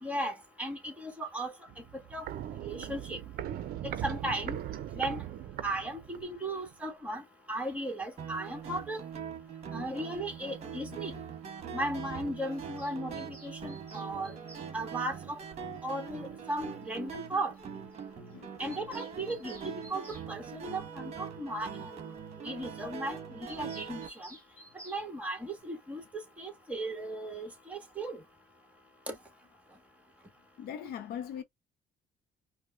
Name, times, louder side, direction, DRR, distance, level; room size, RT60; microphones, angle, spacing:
voice 1, 0.0-1.5 2.1-2.3 2.6-3.2 4.0-4.6 4.9-5.2 5.6-9.0 9.7-11.2 11.7-14.3 14.7-15.4 15.8-17.5 18.6-21.9 22.4-24.3 24.8-28.2 29.1-29.2, right 1 dB, 10° right, 1.5 m, -36 dB
Walk footsteps, 1.7-6.4 6.7-6.8, right 11 dB, 60° right, 0.5 m, -39 dB
sound 1, 8.2-24.1, right 7 dB, 40° right, 1.2 m, -42 dB
voice 2, 10.8-11.3 18.3-18.7 20.0-20.3 22.7-23.0 25.0-25.1 26.0-26.1 27.2-27.3 30.6-31.4, left 9 dB, 70° left, 0.6 m, -44 dB
Bird vocalization bird call bird song, 12.5-14.7 16.1-16.2 16.5-16.6 16.8-16.9 17.2-17.3 17.5-17.6 17.9-18.0 18.3-20.3 23.5-25.0, right 2 dB, 10° left, 2.0 m, -53 dB
5.0 x 2.1 x 2.5 m
cardioid pair, 110°, 17 cm